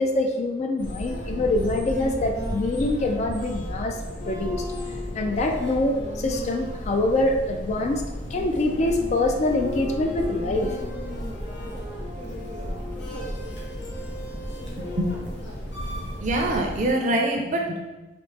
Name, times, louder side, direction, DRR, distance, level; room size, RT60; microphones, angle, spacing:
voice 1, 0.0-4.0 4.3-4.6 5.1-8.0 8.3-10.7, left 2 dB, 40° left, 4 dB, 0.3 m, -24 dB
sound 1, 0.8-16.9, equal, 75° left, 0.9 m, -33 dB
voice 2, 14.8-15.6 16.2-18.1, right 1 dB, 45° right, 2 dB, 0.5 m, -26 dB
4.1 x 2.0 x 3.3 m, 1.1 s
head